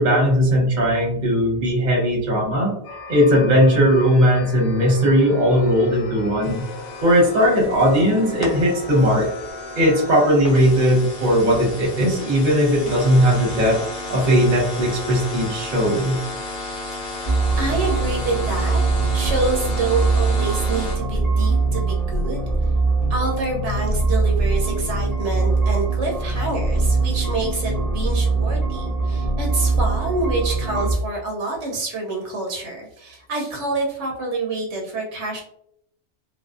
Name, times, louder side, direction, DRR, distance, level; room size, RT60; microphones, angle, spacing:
voice 1, 0.0-2.7 3.1-6.6 7.0-9.3 9.8-13.8 14.1-16.2, equal, 45° right, -2 dB, 0.8 m, -18 dB
sound 1, 2.8-10.3, left 3 dB, 85° left, 1.0 m, -37 dB
sound 2, 6.4-21.0, left 2 dB, 50° left, 0.8 m, -33 dB
voice 2, 17.1-18.8 19.1-22.4 23.1-35.4, right 2 dB, 75° right, 0 dB, 0.9 m, -27 dB
sound 3, 17.2-31.0, right 3 dB, ahead, 0.8 m, -22 dB
2.5 x 2.2 x 2.3 m, 0.73 s
omnidirectional pair, 1.2 m